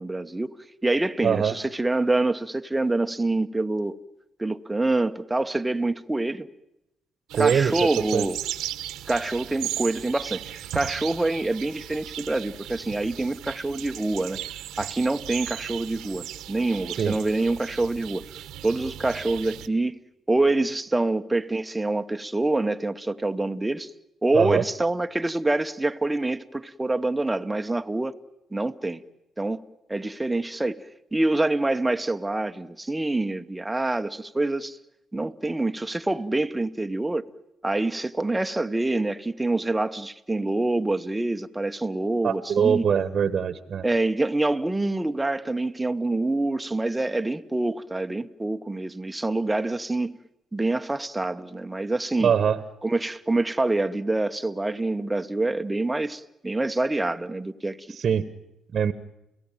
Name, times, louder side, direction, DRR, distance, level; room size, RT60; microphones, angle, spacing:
voice 1, 0.0-4.0 4.4-6.5 7.4-8.4 9.1-14.4 14.8-18.2 18.6-20.0 20.3-23.9 24.2-28.2 28.5-29.0 29.4-29.6 29.9-34.8 35.1-37.3 37.6-42.9 43.8-50.2 50.5-52.3 52.8-58.0, right 2 dB, 15° right, 1.1 m, -26 dB
voice 2, 7.3-7.7 8.1-8.3 17.0-17.1 24.3-24.6 42.2-43.8 52.2-52.6 58.0-58.3 58.7-58.9, right 7 dB, 55° right, 1.2 m, -22 dB
sound 1, 7.3-19.7, right 12 dB, 85° right, 1.2 m, -36 dB
29.5 x 17.0 x 9.0 m
supercardioid pair, 70°, 0 cm